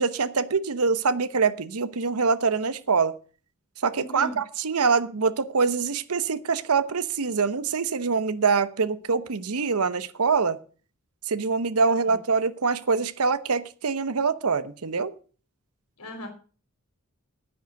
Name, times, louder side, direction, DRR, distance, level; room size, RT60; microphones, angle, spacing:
voice 1, 0.0-3.1 3.8-10.6 11.3-15.1, right 5 dB, 80° right, 14 dB, 0.9 m, -24 dB
voice 2, 3.9-4.4 11.9-12.2 16.0-16.3, equal, 80° left, 4 dB, 4.4 m, -38 dB
9.9 x 9.6 x 6.4 m, 0.39 s
head